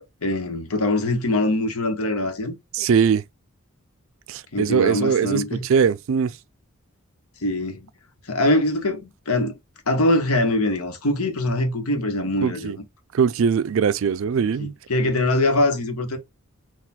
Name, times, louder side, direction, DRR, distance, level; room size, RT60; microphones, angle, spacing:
voice 1, 0.2-2.6 4.5-5.6 7.4-7.9 8.3-9.6 9.9-12.7 14.4-16.2, left 1 dB, 85° left, 1.1 m, -23 dB
voice 2, 2.7-3.2 4.3-6.4 12.4-12.8 13.1-14.7, right 6 dB, 65° right, 0.3 m, -21 dB
4.2 x 2.4 x 4.1 m
head